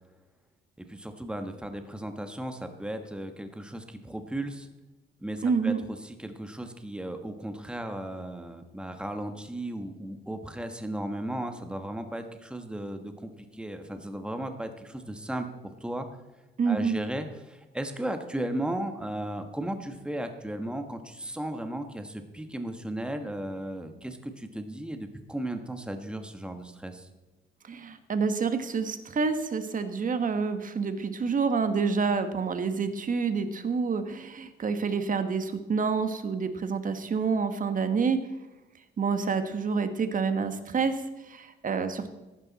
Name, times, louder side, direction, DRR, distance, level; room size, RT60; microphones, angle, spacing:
voice 1, 0.8-4.7 5.2-5.7 6.0-15.5 15.8-16.1 16.7-27.1, right 1 dB, 5° right, 7 dB, 1.5 m, -35 dB
voice 2, 5.4-5.8 16.6-17.0 27.6-38.2 39.0-42.1, right 5 dB, 40° right, 9 dB, 1.4 m, -28 dB
15.0 x 11.5 x 4.2 m, 1.1 s
cardioid pair, 90°, 20 cm